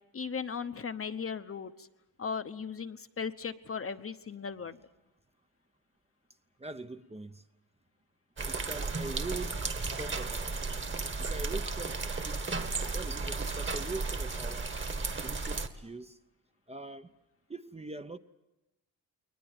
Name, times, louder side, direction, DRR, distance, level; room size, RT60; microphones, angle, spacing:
voice 1, 0.1-1.9 2.2-4.8, left 6 dB, 40° left, 1.0 m, -37 dB
voice 2, 6.6-7.4 8.5-10.6 11.2-12.5 12.9-14.7 15.2-16.2 16.7-17.1 17.5-18.2, right 2 dB, 15° right, 0.8 m, -42 dB
sound 1, 8.4-15.7, right 3 dB, 35° right, 1.7 m, -34 dB
22.0 x 20.0 x 9.0 m
cardioid pair, 90°, 36 cm